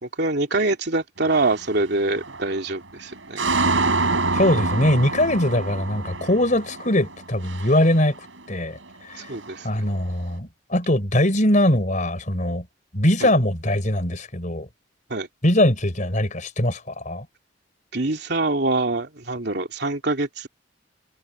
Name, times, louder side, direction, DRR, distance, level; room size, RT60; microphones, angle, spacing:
voice 1, 0.0-3.4 9.2-9.7 13.2-13.3 15.1-15.3 17.9-20.5, right 2 dB, 60° right, 3.2 m, -25 dB
sound 1, 1.3-1.7 2.2-2.8 3.1-8.5 8.8-9.9, right 3 dB, 80° right, 5.5 m, -27 dB
voice 2, 4.3-8.2 8.5-8.8 9.1-9.2 9.6-12.6 12.9-14.7 15.4-17.3, left 1 dB, 40° left, 4.5 m, -21 dB
head